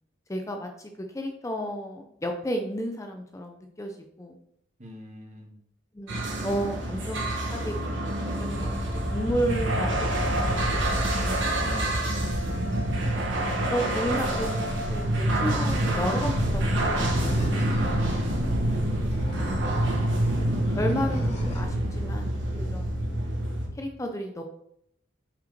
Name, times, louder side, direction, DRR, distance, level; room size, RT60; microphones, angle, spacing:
voice 1, 0.3-4.4 5.9-11.0 13.4-17.4 20.4-23.2 23.7-24.4, equal, 15° left, 4 dB, 0.5 m, -33 dB
voice 2, 4.8-5.5 11.6-12.1, left 1 dB, 40° right, 1 dB, 1.5 m, -42 dB
sound 1, 6.1-23.7, right 1 dB, 70° right, 1.5 m, -26 dB
Animal, 17.0-18.1 18.9-19.9 20.7-21.7, left 1 dB, 35° left, 1.5 m, -39 dB
5.6 x 5.2 x 4.5 m, 0.72 s
head